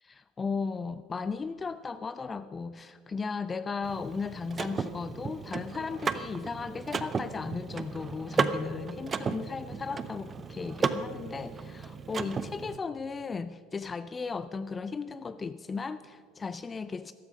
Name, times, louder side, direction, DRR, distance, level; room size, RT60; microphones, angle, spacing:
voice 1, 0.0-17.1, left 4 dB, 25° left, 13 dB, 0.4 m, -36 dB
Car / Mechanisms, 3.8-12.8, right 5 dB, 30° right, 0.7 m, -34 dB
14.5 x 13.0 x 5.1 m, 2.2 s
figure-of-eight pair, 65°, 0 cm